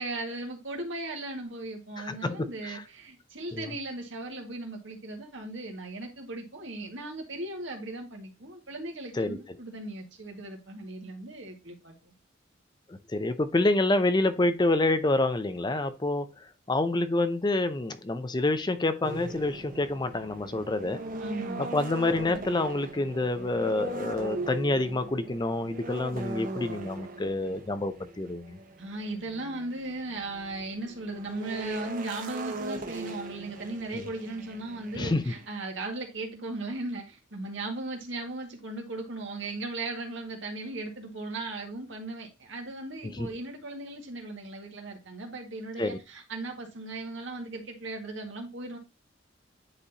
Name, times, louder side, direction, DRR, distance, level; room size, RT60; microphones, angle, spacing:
voice 1, 0.0-12.1 21.2-21.7 28.8-48.8, right 2 dB, 80° right, 1.9 m, -37 dB
voice 2, 2.0-2.8 3.5-3.7 9.2-9.4 12.9-16.3 16.7-21.0 21.6-28.6 33.9-34.0 35.0-35.3 43.1-43.3 45.8-46.0, left 2 dB, 25° left, 0.5 m, -27 dB
sound 1, 19.0-35.5, right 2 dB, 45° right, 0.9 m, -40 dB
9.8 x 4.1 x 2.8 m
head